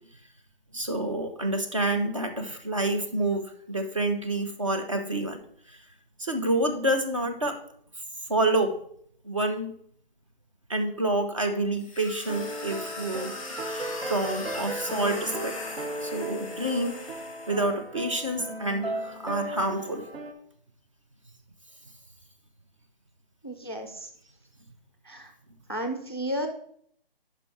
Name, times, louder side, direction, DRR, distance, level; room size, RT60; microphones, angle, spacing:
voice 1, 0.7-5.4 5.7-5.8 6.2-7.6 8.3-8.7 9.2-9.7 10.7-13.3 13.6-15.6 16.0-17.0 17.5-20.0, right 1 dB, 30° right, 5 dB, 0.6 m, -28 dB
sound 1, 11.8-17.7, left 2 dB, 10° left, 0.8 m, -40 dB
sound 2, 12.3-20.3, right 1 dB, 80° right, 1.1 m, -36 dB
voice 2, 23.4-24.1 25.1-25.3 25.7-26.5, equal, 25° left, 3 dB, 0.4 m, -32 dB
5.4 x 5.1 x 5.7 m, 0.64 s
hypercardioid pair, 170°, 30 cm